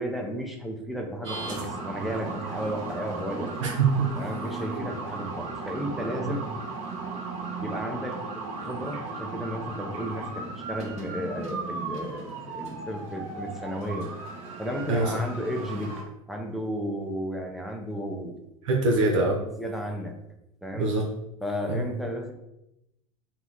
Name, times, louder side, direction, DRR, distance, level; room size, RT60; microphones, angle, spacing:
voice 1, 0.0-3.7 4.1-6.5 7.6-8.2 8.6-14.1 14.6-16.0 16.3-18.4 19.4-20.2 20.6-20.9 21.4-22.3, equal, ahead, 1 dB, 0.5 m, -33 dB
sound 1, 1.2-16.0, right 3 dB, 40° right, 0.9 m, -36 dB
voice 2, 3.6-4.1 6.2-6.4 14.9-15.1 18.6-19.4 20.7-21.0 21.7-21.8, right 3 dB, 65° right, 0 dB, 0.6 m, -23 dB
2.8 x 2.0 x 3.7 m, 0.86 s
figure-of-eight pair, 80°, 17 cm